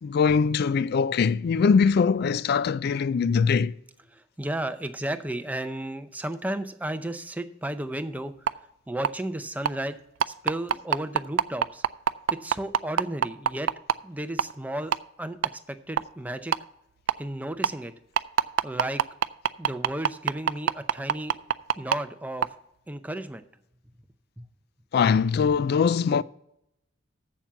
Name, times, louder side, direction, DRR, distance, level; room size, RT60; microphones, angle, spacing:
voice 1, 0.0-3.7 24.9-26.2, left 5 dB, 55° left, 0.3 m, -22 dB
voice 2, 4.1-8.3 8.9-10.0 10.3-11.8 12.4-13.7 14.0-14.9 15.2-15.4 15.7-16.5 17.2-17.9 18.6-19.0 19.6-21.4 21.8-22.5 22.9-23.4 24.4-24.5, right 1 dB, 10° right, 0.6 m, -33 dB
sound 1, 8.5-8.6 9.0-9.1 9.6-9.7 10.2-13.9 14.4-14.5 14.9-15.0 15.4-15.5 16.0-16.1 16.5-16.6 17.1-17.2 17.6-17.7 18.2-21.9 22.4-22.5, right 8 dB, 85° right, 0.4 m, -21 dB
7.4 x 7.0 x 6.9 m
head